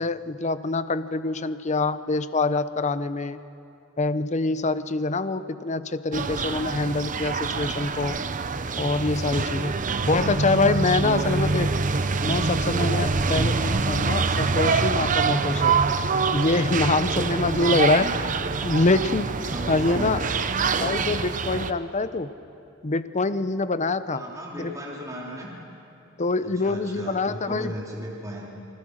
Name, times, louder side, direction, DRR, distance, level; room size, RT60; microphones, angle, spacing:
voice 1, 0.0-3.4 4.0-8.2 8.8-9.7 10.1-11.7 12.2-15.8 16.3-18.1 18.6-19.4 19.7-20.2 20.8-22.3 22.8-24.2 24.6-24.7 26.2-27.7, left 3 dB, 35° left, 12 dB, 0.8 m, -25 dB
sound 1, 6.1-21.7, right 4 dB, 40° right, 0.8 m, -25 dB
voice 2, 9.8-10.4 11.0-11.7 17.6-18.4 18.8-19.0 19.5-20.3 24.1-25.5 26.4-28.5, right 1 dB, 15° right, -4 dB, 3.4 m, -36 dB
28.0 x 20.5 x 6.5 m, 2.7 s
head